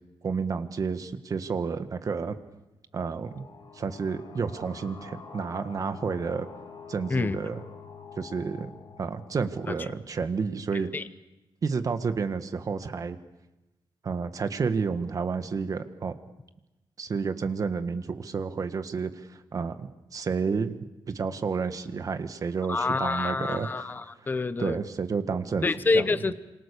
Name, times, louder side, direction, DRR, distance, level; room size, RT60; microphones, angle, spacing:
voice 1, 0.2-2.4 2.9-3.4 3.7-6.5 6.9-7.6 8.2-8.7 9.0-10.9 11.6-13.2 14.0-16.1 17.0-20.7 21.1-23.9 24.6-25.7 25.9-26.1, right 5 dB, 45° right, 9 dB, 1.6 m, -30 dB
sound 1, 3.0-10.4, left 6 dB, 80° left, 5.2 m, -47 dB
voice 2, 22.7-24.8 25.6-26.3, left 3 dB, 20° left, 12 dB, 0.8 m, -27 dB
27.5 x 25.5 x 6.9 m, 1.0 s
wide cardioid pair, 135°, 8 cm